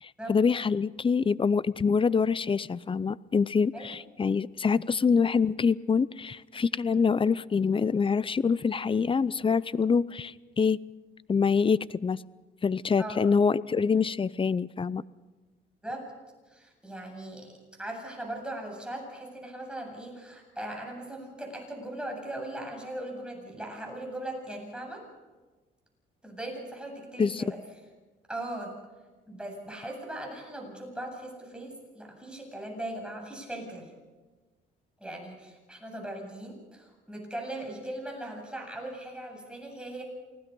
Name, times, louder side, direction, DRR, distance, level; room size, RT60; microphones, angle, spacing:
voice 1, 0.0-10.8 11.3-12.2 12.6-15.0 27.2-27.4, left 5 dB, 25° left, 19 dB, 0.6 m, -25 dB
voice 2, 16.5-25.0 26.2-27.6 28.3-28.8 29.3-33.9 35.0-40.0, right 1 dB, 5° right, 1 dB, 8.0 m, -39 dB
28.5 x 19.0 x 5.4 m, 1.2 s
cardioid pair, 90°, 20 cm